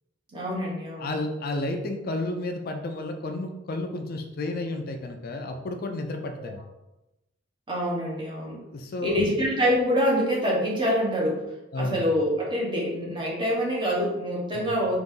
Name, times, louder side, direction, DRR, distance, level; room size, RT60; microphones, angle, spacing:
voice 1, 0.3-1.1 6.4-6.5 7.7-8.6 9.0-11.4 11.8-14.9, equal, 25° right, -4 dB, 1.1 m, -25 dB
voice 2, 1.0-6.6 8.7-9.3 11.7-12.1 14.5-14.8, left 2 dB, 55° left, 5 dB, 0.4 m, -32 dB
3.9 x 2.7 x 3.7 m, 0.94 s
head